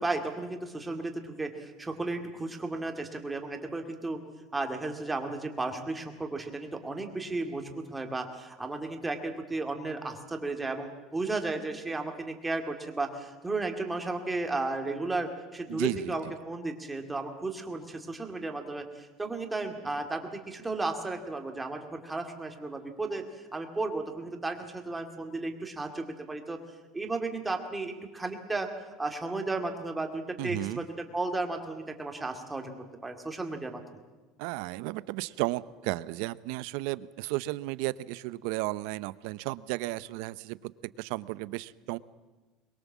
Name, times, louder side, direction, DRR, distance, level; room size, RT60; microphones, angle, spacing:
voice 1, 0.0-4.2 4.5-26.6 26.9-28.7 29.0-33.8, right 2 dB, 10° right, 4 dB, 2.3 m, -34 dB
voice 2, 15.7-16.1 30.4-30.9 34.4-40.7 41.0-42.0, right 19 dB, 75° right, 17 dB, 0.7 m, -34 dB
23.5 x 21.5 x 7.4 m, 1.2 s
cardioid pair, 145°, 0 cm